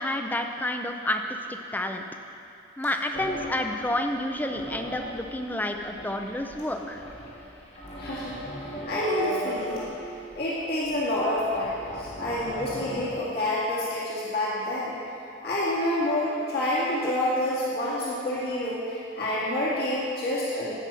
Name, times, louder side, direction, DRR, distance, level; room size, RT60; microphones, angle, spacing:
voice 1, 0.0-2.0 2.8-7.0 17.0-17.1, left 1 dB, 10° left, 4 dB, 0.5 m, -30 dB
sound 1, 3.1-13.1, equal, 30° left, 1.3 m, -39 dB
voice 2, 8.0-9.8 10.3-14.9 15.4-20.7, left 1 dB, 55° left, -8 dB, 2.0 m, -28 dB
15.5 x 5.4 x 5.6 m, 3.0 s
head